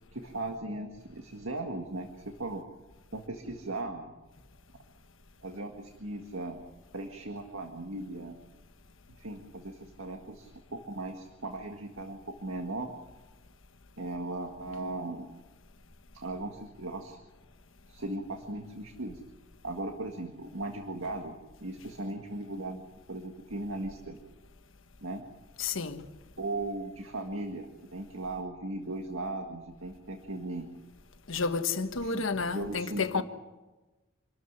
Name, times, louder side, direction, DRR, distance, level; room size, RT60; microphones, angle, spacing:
voice 1, 0.1-2.6 3.1-4.1 5.4-6.6 6.9-8.4 9.2-12.9 14.0-15.3 16.1-17.2 17.9-19.2 19.6-22.8 23.1-24.2 25.0-25.2 26.4-27.7 27.9-30.7 32.0-33.2, right 2 dB, 75° right, 1.9 m, -37 dB
voice 2, 25.6-26.0 31.3-33.2, left 4 dB, 70° left, 1.4 m, -30 dB
26.5 x 13.5 x 9.8 m
head